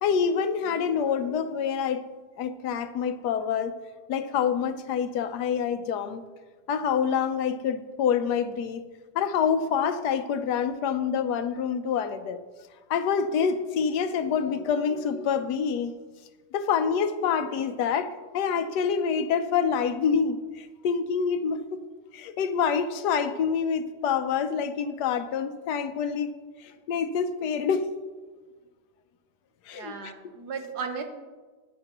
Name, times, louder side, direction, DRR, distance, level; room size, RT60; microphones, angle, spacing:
voice 1, 0.0-2.0 2.4-3.7 4.1-6.2 6.7-8.8 9.1-12.4 12.9-15.9 16.5-21.8 22.1-26.3 26.6-27.9 29.7-30.1, left 7 dB, 80° left, 10 dB, 1.3 m, -27 dB
voice 2, 29.7-31.0, right 5 dB, 80° right, 5 dB, 1.7 m, -35 dB
15.0 x 9.6 x 3.0 m, 1.3 s
omnidirectional pair, 1.7 m